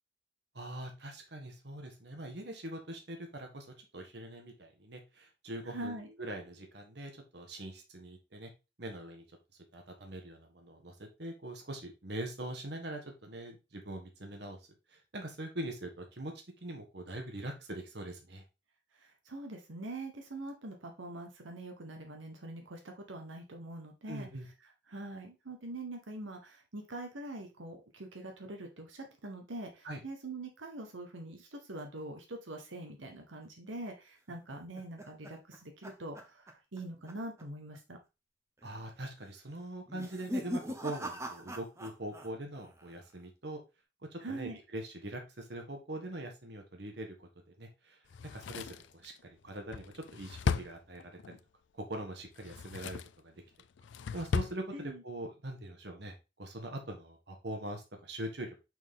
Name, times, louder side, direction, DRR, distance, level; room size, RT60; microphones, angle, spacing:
voice 1, 0.5-3.7 3.9-8.5 8.8-9.2 9.7-14.6 14.9-16.3 16.6-18.4 24.1-24.5 29.8-30.0 38.6-43.6 44.1-47.3 47.6-51.4 51.7-53.3 54.1-58.5, right 1 dB, 60° right, 3 dB, 1.4 m, -43 dB
voice 2, 5.6-6.1 18.9-24.3 24.9-38.0 44.2-44.6 54.7-55.0, right 2 dB, 85° right, 3 dB, 1.3 m, -44 dB
sound 1, 34.3-36.8 37.1-37.4 37.7-37.8 38.6-39.0 39.9-42.3 42.5-43.1, equal, 15° right, 0.8 m, -41 dB
Drawer open or close, 48.1-51.4 52.3-53.2 53.6-54.6 54.9-55.0, left 5 dB, 70° left, 0.3 m, -36 dB
6.1 x 4.3 x 3.6 m, 0.27 s
head